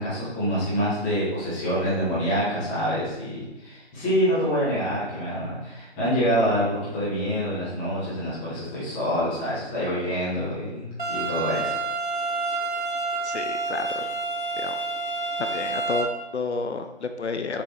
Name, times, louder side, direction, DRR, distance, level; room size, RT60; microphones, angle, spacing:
voice 1, 0.0-11.7, equal, 5° left, -11 dB, 1.1 m, -26 dB
sound 1, 11.0-16.0, right 3 dB, 45° right, 0.8 m, -28 dB
voice 2, 13.2-14.0 14.6-14.8 15.4-17.6, left 4 dB, 70° left, 7 dB, 0.6 m, -30 dB
6.9 x 3.6 x 4.3 m, 1.0 s
figure-of-eight pair, 160°, 35 cm